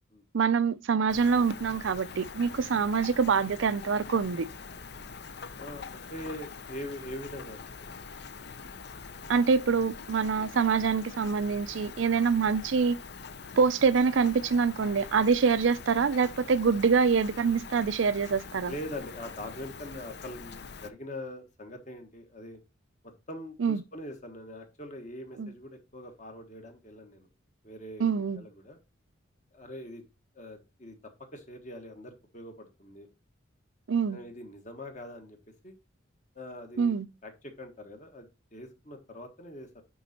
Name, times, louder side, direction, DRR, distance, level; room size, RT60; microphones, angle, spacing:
voice 1, 0.3-4.5 9.3-13.0 13.6-18.7 23.6-23.8 25.4-25.5 28.0-28.4 33.9-34.2 36.8-37.1, right 5 dB, 70° right, 0.5 m, -25 dB
Rain, 1.1-20.9, left 5 dB, 55° left, 0.6 m, -44 dB
voice 2, 5.6-7.9 10.3-10.7 18.7-22.6 23.3-27.3 27.6-28.8 29.5-30.0 30.3-31.0 31.3-33.1 34.1-35.4 35.6-35.7 36.3-37.0 37.2-39.8, left 1 dB, 40° left, 1.4 m, -43 dB
9.4 x 3.9 x 4.2 m
head